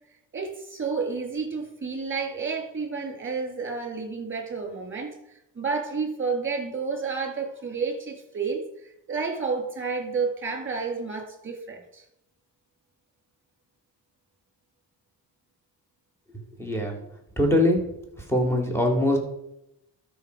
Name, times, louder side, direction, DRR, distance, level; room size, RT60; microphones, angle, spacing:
voice 1, 0.3-5.2 5.5-12.0, right 4 dB, 25° right, 3 dB, 2.9 m, -30 dB
voice 2, 16.6-17.0 17.4-17.8 18.3-19.2, left 1 dB, 5° left, 1 dB, 2.8 m, -22 dB
12.5 x 5.6 x 4.7 m, 0.83 s
cardioid pair, 75°, 46 cm